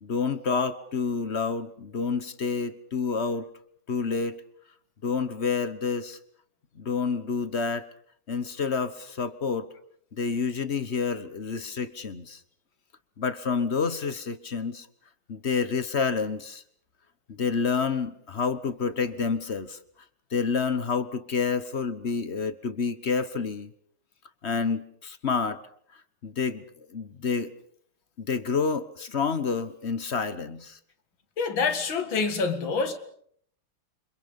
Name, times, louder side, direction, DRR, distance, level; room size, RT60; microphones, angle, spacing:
voice 1, 0.0-3.5 3.9-4.4 5.0-6.2 6.8-7.9 8.3-9.7 10.1-12.4 13.2-14.9 15.3-16.6 17.4-19.8 20.3-23.7 24.4-25.6 26.2-27.5 28.2-30.8, left 5 dB, 40° left, 1.2 m, -28 dB
voice 2, 31.4-33.0, left 4 dB, 75° left, 2.7 m, -26 dB
29.5 x 26.0 x 5.3 m
omnidirectional pair, 2.1 m